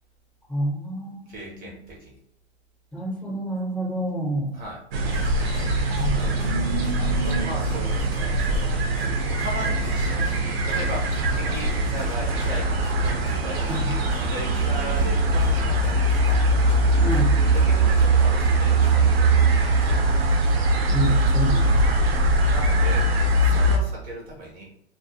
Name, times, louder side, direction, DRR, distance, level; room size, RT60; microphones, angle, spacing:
voice 1, 0.5-1.8 2.9-4.5 6.0-7.7 13.6-13.9 17.0-17.3 20.9-21.8, right 1 dB, 5° left, -7 dB, 0.9 m, -29 dB
voice 2, 1.3-2.2 4.5-4.8 7.0-8.8 9.4-10.3 10.6-12.7 13.3-16.4 17.5-20.1 22.4-23.1 23.4-24.6, right 1 dB, 25° right, -3 dB, 0.7 m, -37 dB
sound 1, 4.9-23.8, right 2 dB, 65° right, 0.7 m, -21 dB
sound 2, 5.1-19.3, left 1 dB, 85° left, 0.8 m, -36 dB
2.3 x 2.3 x 2.7 m, 0.73 s
hypercardioid pair, 130°, 33 cm